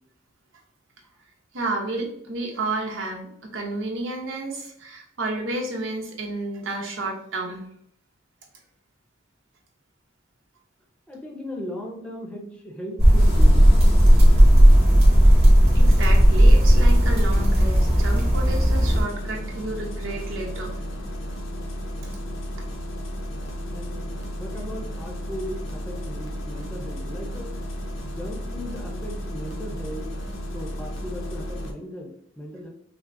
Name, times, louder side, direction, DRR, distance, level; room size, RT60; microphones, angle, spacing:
voice 1, 1.5-7.7 15.7-20.8, right 2 dB, 85° right, 1 dB, 0.8 m, -31 dB
voice 2, 11.1-13.7 23.7-27.5 28.0-30.2 30.5-32.7, equal, 5° left, -1 dB, 0.7 m, -37 dB
sound 1, 13.0-19.0, equal, 35° right, 1.3 m, -15 dB
Engine starting, 13.2-31.7, equal, 80° left, 0.8 m, -33 dB
5.7 x 2.0 x 2.5 m, 0.68 s
head